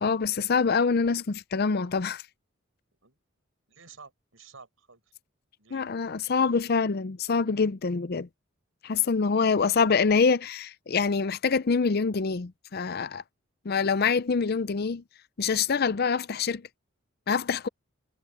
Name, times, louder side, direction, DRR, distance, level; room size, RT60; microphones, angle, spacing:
voice 1, 0.0-2.2 5.7-8.3 8.8-13.2 13.6-15.0 15.4-16.6 17.3-17.7, left 5 dB, 50° left, 0.5 m, -25 dB
voice 2, 3.7-5.0 5.6-6.2 9.6-9.9, right 5 dB, 70° right, 5.9 m, -52 dB
head